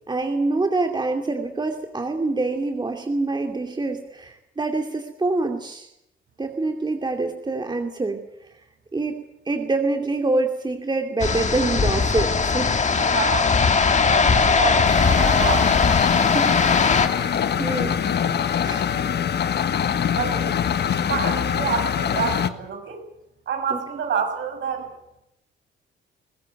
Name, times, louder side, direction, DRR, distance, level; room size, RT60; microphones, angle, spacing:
voice 1, 0.1-5.9 6.4-8.2 8.9-12.8 14.3-14.5 16.2-16.6 17.1-18.0 18.6-18.9 23.7-23.8, right 3 dB, 20° right, 4 dB, 2.6 m, -26 dB
sound 1, 11.2-17.1, left 5 dB, 35° left, 2.0 m, -19 dB
voice 2, 13.0-13.5 14.0-15.7 20.2-20.5 21.0-23.0 23.5-24.9, right 7 dB, 65° right, 5 dB, 6.5 m, -28 dB
sound 2, 14.8-22.5, left 8 dB, 60° left, 1.6 m, -24 dB
21.5 x 16.5 x 9.5 m, 0.84 s
cardioid pair, 90°, 20 cm